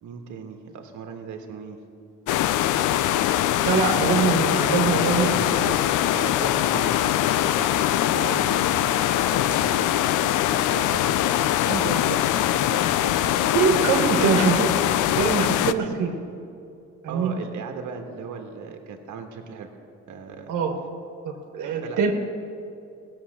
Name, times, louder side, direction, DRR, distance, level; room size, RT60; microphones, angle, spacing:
voice 1, 0.0-1.8 3.6-4.3 5.0-5.6 6.0-7.8 8.5-9.0 9.3-12.1 12.5-13.7 15.7-15.8 17.1-19.7 20.1-20.5 21.6-22.1, right 5 dB, 75° right, 4 dB, 1.4 m, -38 dB
sound 1, 2.3-15.7, left 12 dB, 80° left, 0.5 m, -22 dB
voice 2, 3.6-5.7 8.1-8.4 13.5-14.7 15.2-16.1 17.0-17.3 20.5-20.7 21.2-22.1, right 6 dB, 90° right, 3 dB, 1.3 m, -23 dB
16.0 x 7.3 x 7.4 m, 2.6 s
cardioid pair, 90°, 30 cm